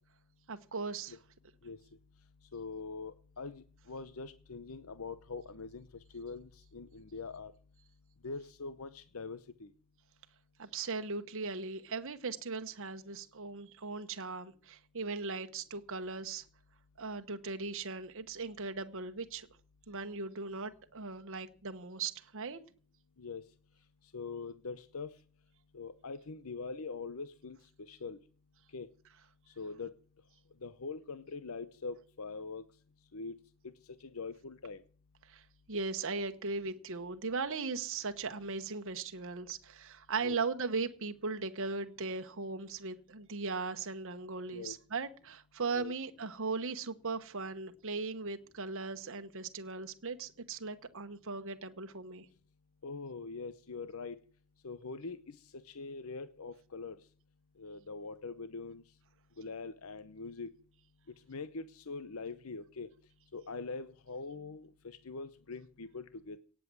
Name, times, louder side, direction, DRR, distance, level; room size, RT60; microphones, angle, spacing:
voice 1, 0.5-1.2 10.6-16.4 17.0-19.5 19.9-22.6 35.3-35.4 35.7-52.3, right 4 dB, 60° right, 1.1 m, -38 dB
voice 2, 2.5-5.9 6.1-7.5 8.2-9.7 23.2-23.4 24.1-25.1 25.7-28.2 28.7-28.9 29.6-29.9 30.6-32.6 33.1-33.4 34.0-34.8 40.2-40.4 44.5-44.8 45.7-45.9 52.8-54.2 54.6-55.4 55.6-57.0 57.6-58.8 59.4-60.5 61.3-62.9 63.3-66.4, left 4 dB, 65° left, 0.8 m, -43 dB
18.0 x 7.6 x 7.5 m
head